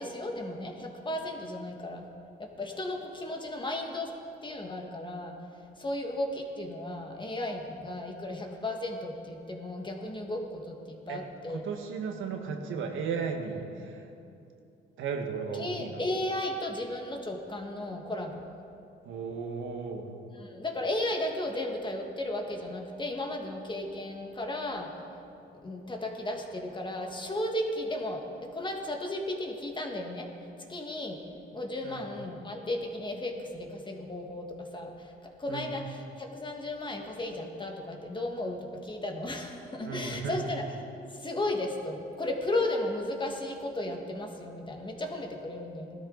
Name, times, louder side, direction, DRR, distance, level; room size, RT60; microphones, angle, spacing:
voice 1, 0.0-2.1 2.4-4.1 4.4-5.4 5.8-11.6 15.6-18.5 20.3-25.0 25.6-30.3 30.7-31.2 31.5-40.7 41.1-46.0, left 1 dB, 25° left, 2 dB, 1.8 m, -35 dB
voice 2, 11.5-14.0 15.0-16.1 19.0-20.1 31.8-32.0 35.5-35.7 39.8-40.4, right 5 dB, 80° right, 3 dB, 1.6 m, -35 dB
17.5 x 12.5 x 4.0 m, 2.7 s
cardioid pair, 90°, 20 cm